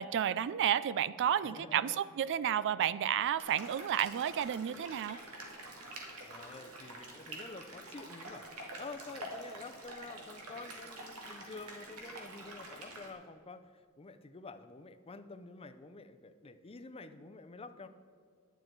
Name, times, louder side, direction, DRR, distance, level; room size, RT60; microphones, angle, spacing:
voice 1, 0.0-5.2, right 9 dB, 55° right, 17 dB, 0.3 m, -31 dB
voice 2, 1.5-2.0 6.2-8.5 8.8-17.9, left 3 dB, 25° left, 11 dB, 0.5 m, -49 dB
sound 1, 3.4-13.1, right 1 dB, 85° right, 2.2 m, -47 dB
11.5 x 9.3 x 4.5 m, 2.2 s
head